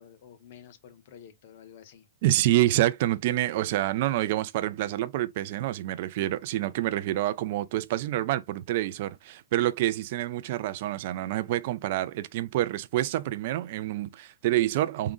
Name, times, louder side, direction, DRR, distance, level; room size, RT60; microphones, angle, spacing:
voice 1, 0.0-2.1, left 9 dB, 35° left, 0.6 m, -50 dB
voice 2, 2.2-15.1, right 14 dB, 35° right, 0.3 m, -27 dB
3.7 x 2.0 x 3.7 m
hypercardioid pair, 180°, 0 cm